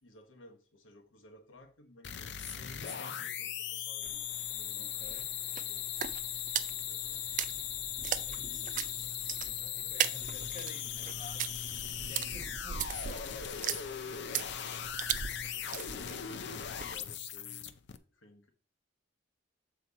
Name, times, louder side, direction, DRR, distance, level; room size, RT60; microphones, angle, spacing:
voice 1, 0.0-6.0 6.6-7.3 7.8-7.9 8.3-9.1 9.8-10.2 15.4-18.5, left 1 dB, 90° left, 1.3 m, -59 dB
sound 1, 2.0-18.0, left 9 dB, 60° left, 0.5 m, -39 dB
voice 2, 2.4-3.3 4.7-5.3 8.3-8.7 9.2-11.6 12.1-14.7, left 4 dB, 45° left, 1.2 m, -49 dB
sound 2, 4.0-17.1, right 9 dB, 40° right, 0.4 m, -39 dB
7.2 x 4.4 x 4.1 m
head